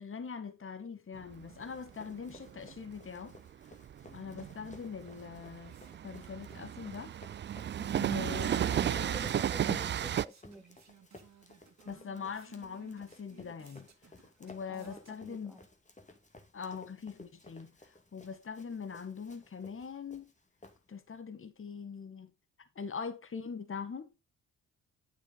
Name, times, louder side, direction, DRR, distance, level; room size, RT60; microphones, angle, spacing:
voice 1, 0.0-3.3 4.0-5.8 6.0-7.1 8.0-9.3 9.6-9.8 11.8-13.9 14.4-15.6 16.5-20.3 20.9-22.3 22.7-24.1, left 6 dB, 35° left, 1.6 m, -42 dB
Train, 1.2-10.3, right 10 dB, 35° right, 0.4 m, -34 dB
Run, 1.3-21.2, left 2 dB, 20° left, 2.3 m, -58 dB
sound 1, 5.3-15.6, right 7 dB, 50° right, 2.4 m, -62 dB
voice 2, 8.6-10.7 14.4-15.7, right 1 dB, ahead, 1.5 m, -50 dB
9.6 x 7.1 x 4.0 m
hypercardioid pair, 45°, 34 cm